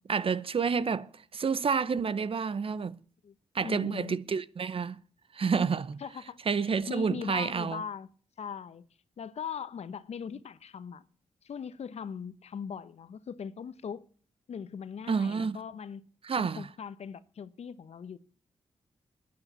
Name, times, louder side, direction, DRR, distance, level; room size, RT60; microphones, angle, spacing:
voice 1, 0.1-3.0 3.5-5.0 5.3-6.0 6.5-7.8 15.1-15.6 16.2-16.7, right 5 dB, 55° right, 0.8 m, -29 dB
voice 2, 3.2-4.2 6.0-8.1 8.4-8.9 9.2-11.0 11.4-14.0 14.5-16.0 16.4-18.2, left 7 dB, 70° left, 0.9 m, -40 dB
11.5 x 9.7 x 8.2 m
supercardioid pair, 50°, 11 cm